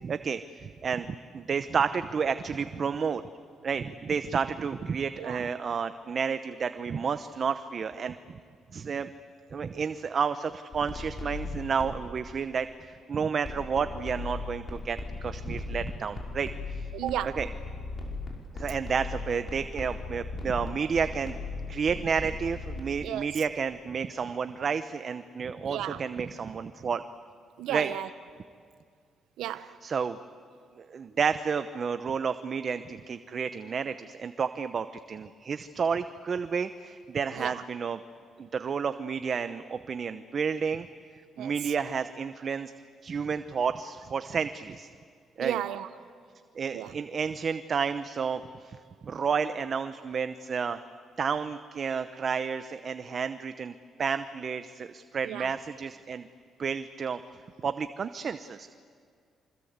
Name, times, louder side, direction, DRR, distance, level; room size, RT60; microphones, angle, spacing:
voice 1, 0.0-3.2 3.6-8.1 8.7-9.1 9.5-16.9 17.2-17.5 18.5-21.3 21.7-27.0 27.7-27.9 29.4-30.2 30.8-38.0 38.4-40.9 41.4-42.7 43.0-44.9 45.4-45.6 46.5-48.8 49.0-50.8 51.2-53.7 54.0-56.3 56.6-57.2 57.6-58.7, right 6 dB, 45° right, 11 dB, 0.8 m, -31 dB
sound 1, 10.7-12.1 13.4-22.8, left 3 dB, 45° left, 5.6 m, -38 dB
voice 2, 16.9-17.4 23.0-23.3 25.7-26.0 27.6-28.1 29.4-29.7 37.3-37.6 41.4-41.5 45.4-45.9 46.7-46.9 55.2-55.5, right 12 dB, 85° right, 12 dB, 0.8 m, -33 dB
27.5 x 25.0 x 8.1 m, 2.2 s
cardioid pair, 90°, 0 cm